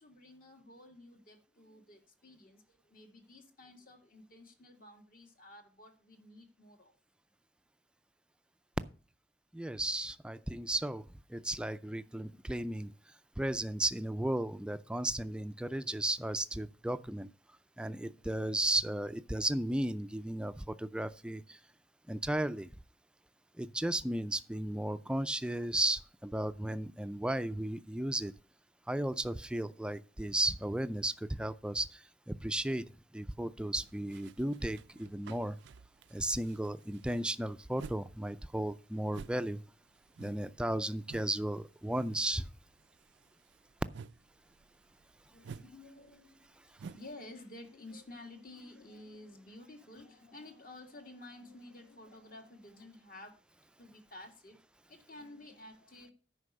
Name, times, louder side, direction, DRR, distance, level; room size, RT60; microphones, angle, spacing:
voice 1, 0.0-6.9 45.3-53.4 53.8-54.6 54.9-56.1, left 2 dB, 50° left, 2.0 m, -52 dB
voice 2, 9.5-11.0 11.3-12.9 13.4-17.3 17.8-21.6 22.1-22.7 23.6-28.3 28.9-32.0 32.3-32.9 33.1-35.6 36.1-39.6 40.2-42.4, right 1 dB, 5° right, 0.4 m, -34 dB
sound 1, 33.9-38.1 38.4-41.4 41.7-42.4 42.6-47.1, right 5 dB, 85° right, 0.4 m, -52 dB
9.7 x 5.3 x 6.6 m
head